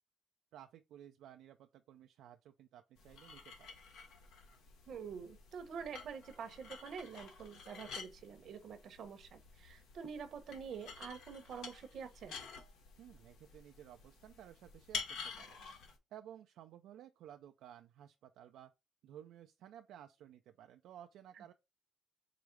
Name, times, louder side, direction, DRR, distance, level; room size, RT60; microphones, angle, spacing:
voice 1, 0.5-3.7 13.0-15.6 16.1-18.7 19.0-21.5, right 11 dB, 85° right, 0.3 m, -55 dB
sound 1, 3.0-15.9, left 5 dB, 85° left, 1.1 m, -50 dB
voice 2, 4.9-12.4 21.4-21.5, right 6 dB, 65° right, 0.9 m, -47 dB
4.9 x 2.1 x 4.6 m
cardioid pair, 90°, 0 cm